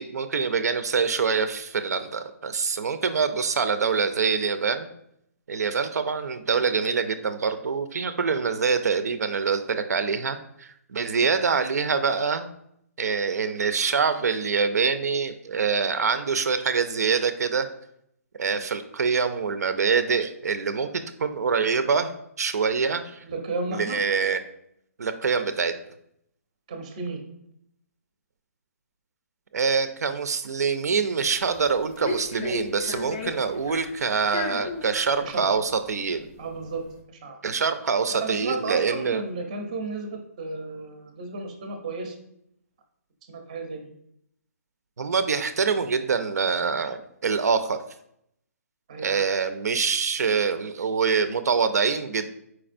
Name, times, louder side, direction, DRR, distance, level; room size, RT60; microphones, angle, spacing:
voice 1, 0.0-4.9 5.5-12.5 13.0-17.7 18.4-22.1 22.4-23.2 23.7-24.4 25.0-25.7 29.5-36.3 37.4-39.2 45.0-47.8 49.0-52.3, right 5 dB, 80° right, 10 dB, 0.4 m, -25 dB
voice 2, 23.2-24.0 26.7-27.2 35.2-35.5 36.4-36.8 37.2-37.4 38.1-42.1 43.3-43.9 48.9-49.2, right 3 dB, 25° right, 4 dB, 0.5 m, -33 dB
sound 1, 31.4-36.9, left 4 dB, 25° left, 0.4 m, -35 dB
4.6 x 4.3 x 2.5 m, 0.74 s
hypercardioid pair, 175°, 9 cm